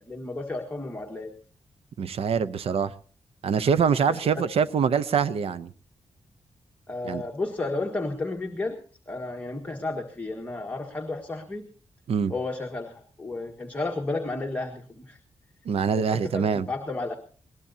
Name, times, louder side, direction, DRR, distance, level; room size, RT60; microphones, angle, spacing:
voice 1, 0.1-1.3 4.1-4.2 6.9-8.8 9.1-11.7 12.3-15.2 15.9-17.1, left 2 dB, 15° left, 1.7 m, -32 dB
voice 2, 2.0-2.9 3.4-5.7 7.0-7.2 12.1-12.3 15.7-16.7, right 6 dB, 75° right, 0.7 m, -24 dB
21.0 x 19.0 x 2.8 m
wide cardioid pair, 135°, 10 cm